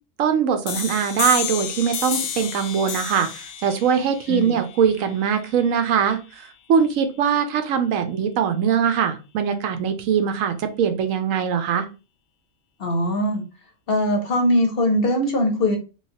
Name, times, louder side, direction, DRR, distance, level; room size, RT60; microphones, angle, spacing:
voice 1, 0.2-11.9, right 7 dB, 80° right, 8 dB, 1.0 m, -22 dB
sound 1, 0.7-6.1, left 9 dB, 85° left, 1.0 m, -31 dB
voice 2, 4.3-4.6 12.8-13.4 13.9-15.8, left 1 dB, 55° left, 4 dB, 0.8 m, -21 dB
3.1 x 3.1 x 2.7 m, 0.31 s
omnidirectional pair, 1.4 m